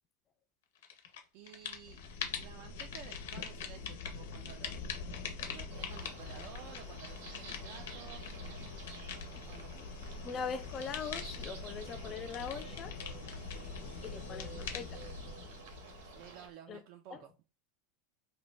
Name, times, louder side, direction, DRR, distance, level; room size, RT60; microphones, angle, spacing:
sound 1, 0.8-1.2 1.5-16.5, left 5 dB, 90° left, 0.5 m, -43 dB
voice 1, 1.3-2.0 2.3-5.3 5.5-8.2 9.3-9.7 14.2-14.8 16.1-17.3, right 9 dB, 50° right, 0.3 m, -53 dB
sound 2, 5.7-16.5, right 5 dB, 80° right, 0.7 m, -52 dB
voice 2, 10.2-12.9 14.0-15.0 15.3-15.4 16.7-16.8 17.1-17.2, left 6 dB, 30° left, 0.3 m, -41 dB
2.5 x 2.1 x 3.1 m
supercardioid pair, 145°, 0 cm